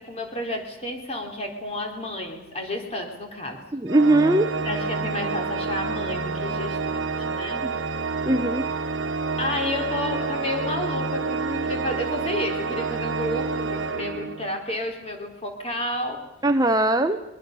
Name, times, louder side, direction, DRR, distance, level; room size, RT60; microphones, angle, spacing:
voice 1, 0.0-3.6 4.5-7.6 9.4-16.2, left 1 dB, 30° left, 3 dB, 4.1 m, -31 dB
voice 2, 3.7-4.5 7.6-7.7 8.3-8.6 16.4-17.2, right 2 dB, 20° right, 8 dB, 0.8 m, -20 dB
Organ, 3.9-14.7, right 4 dB, 85° right, 1.3 m, -28 dB
24.5 x 22.0 x 6.9 m, 0.93 s
head